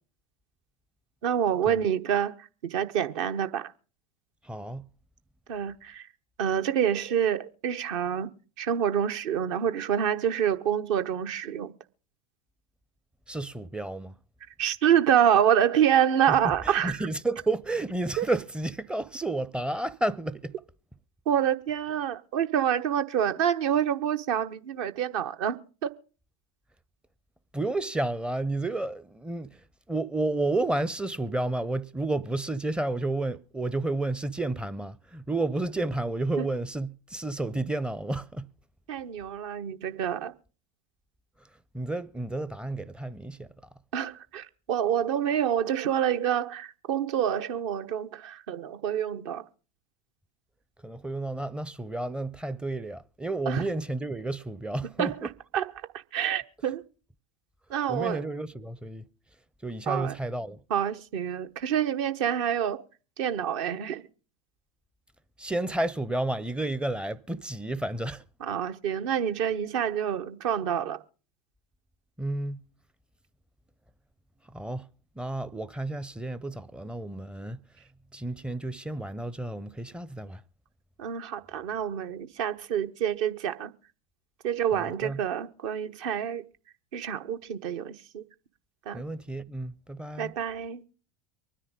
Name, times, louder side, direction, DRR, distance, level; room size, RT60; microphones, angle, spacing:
voice 1, 1.2-3.7 5.5-6.1 6.4-8.3 8.6-11.7 14.6-17.0 18.2-18.3 21.3-25.6 25.8-25.9 36.4-36.5 38.9-40.3 43.9-49.4 53.5-53.6 55.0-55.7 56.1-56.8 57.7-58.3 59.9-60.1 60.7-62.8 63.2-64.0 68.4-71.0 81.0-83.7 84.4-86.4 86.9-88.2 88.9-89.0 90.2-90.8, right 9 dB, 55° right, 1.1 m, -27 dB
voice 2, 4.4-4.8 13.3-14.1 16.3-16.4 16.6-20.5 27.5-38.5 41.7-43.5 50.8-55.3 57.9-59.1 59.6-60.6 65.4-68.2 72.2-72.6 74.5-74.9 75.2-77.6 78.1-80.4 84.7-85.2 88.9-90.3, right 2 dB, 5° right, 0.6 m, -31 dB
24.5 x 10.0 x 3.7 m
figure-of-eight pair, 80°, 19 cm